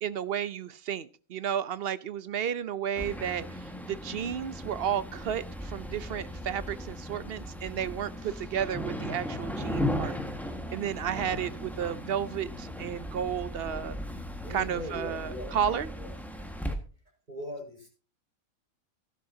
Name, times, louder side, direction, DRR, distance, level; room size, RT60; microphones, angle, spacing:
voice 1, 0.0-3.5 3.9-10.2 10.7-14.0 14.5-15.9, right 9 dB, 55° right, 16 dB, 0.8 m, -32 dB
sound 1, 3.0-16.7, left 1 dB, ahead, 1.5 m, -37 dB
voice 2, 14.4-15.5 16.0-16.5 17.3-17.9, equal, 30° right, 1 dB, 5.0 m, -40 dB
15.5 x 12.0 x 2.8 m, 0.36 s
omnidirectional pair, 1.5 m